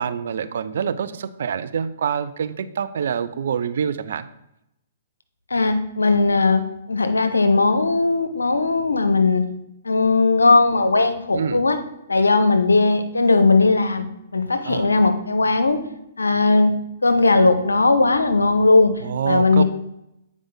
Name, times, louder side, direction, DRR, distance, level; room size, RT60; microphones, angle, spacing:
voice 1, 0.0-4.2 11.3-11.6 14.7-14.9 19.0-19.6, right 7 dB, 65° right, 13 dB, 0.5 m, -26 dB
voice 2, 5.5-9.4 9.8-11.8 12.1-14.0 14.3-15.8 16.2-16.7 17.0-18.9 19.2-19.6, left 3 dB, 85° left, 9 dB, 0.8 m, -18 dB
8.2 x 4.9 x 4.0 m, 0.84 s
figure-of-eight pair, 125°, 0 cm